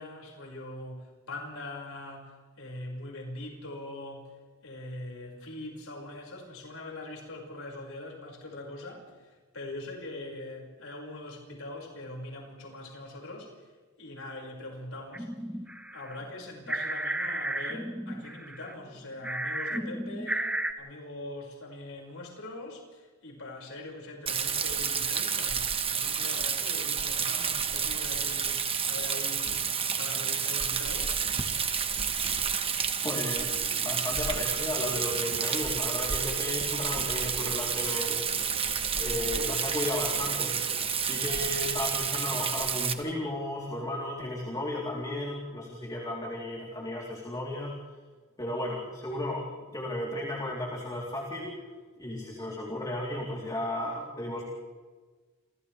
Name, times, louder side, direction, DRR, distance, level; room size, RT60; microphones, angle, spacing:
voice 1, 0.0-13.7 14.0-15.3 15.9-29.7 30.0-31.2, left 2 dB, 80° left, -1 dB, 5.9 m, -42 dB
sound 1, 15.1-16.2 16.5-19.0 19.2-20.7, right 1 dB, 5° right, 1.1 m, -33 dB
Rain, 24.3-42.9, right 6 dB, 25° right, 1.4 m, -30 dB
sound 2, 29.5-41.7, right 8 dB, 70° right, 1.6 m, -45 dB
voice 2, 33.0-38.3 39.0-40.6 41.0-48.0 48.4-49.5 49.7-51.5 52.0-54.4, left 1 dB, 20° left, -3 dB, 3.7 m, -34 dB
29.0 x 29.0 x 3.5 m, 1.4 s
head